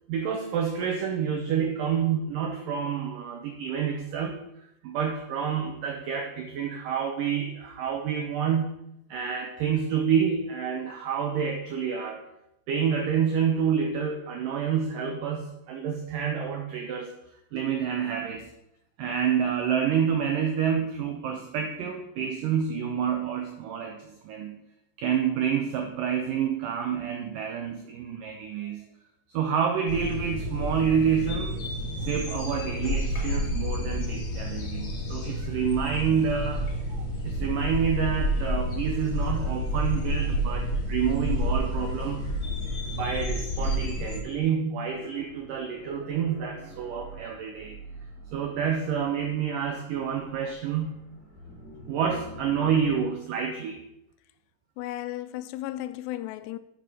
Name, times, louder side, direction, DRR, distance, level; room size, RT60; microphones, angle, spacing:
voice 1, 0.1-4.5 4.8-8.7 9.1-12.2 12.7-17.1 17.5-18.5 19.0-24.6 25.0-28.9 29.3-31.5 32.0-42.4 42.9-47.8 48.3-50.9 51.9-53.8, right 7 dB, 80° right, 2.0 m, -28 dB
sound 1, 29.9-44.2, equal, 50° left, 1.7 m, -30 dB
sound 2, 44.8-53.0, right 1 dB, 5° right, 1.9 m, -47 dB
voice 2, 54.8-56.6, left 14 dB, 90° left, 2.8 m, -34 dB
11.0 x 6.1 x 5.0 m
omnidirectional pair, 4.8 m